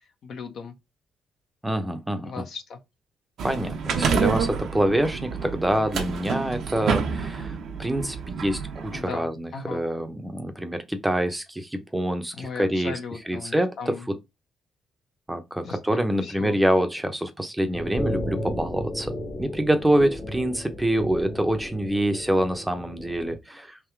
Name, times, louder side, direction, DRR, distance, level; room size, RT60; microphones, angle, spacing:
voice 1, 0.2-0.8 2.2-2.8 8.9-9.8 12.3-14.1 15.6-16.6, left 5 dB, 65° left, 1.0 m, -37 dB
voice 2, 1.6-2.5 3.4-12.9 13.3-14.2 15.3-23.8, right 1 dB, 10° right, 0.7 m, -26 dB
sound 1, 3.4-9.0, right 5 dB, 70° right, 0.9 m, -28 dB
sound 2, 17.7-23.4, left 1 dB, 25° left, 1.0 m, -34 dB
3.6 x 2.9 x 4.5 m
cardioid pair, 90°, 0 cm